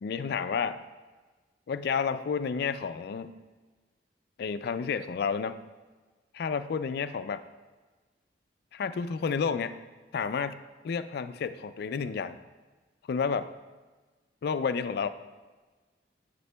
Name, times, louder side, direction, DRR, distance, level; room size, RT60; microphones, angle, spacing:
voice 1, 0.0-0.8 1.7-3.4 4.4-5.6 6.3-7.4 8.7-9.8 10.1-10.6 10.8-12.4 13.1-13.5 14.4-15.1, left 6 dB, 60° left, 12 dB, 0.3 m, -30 dB
9.4 x 8.2 x 2.2 m, 1.3 s
head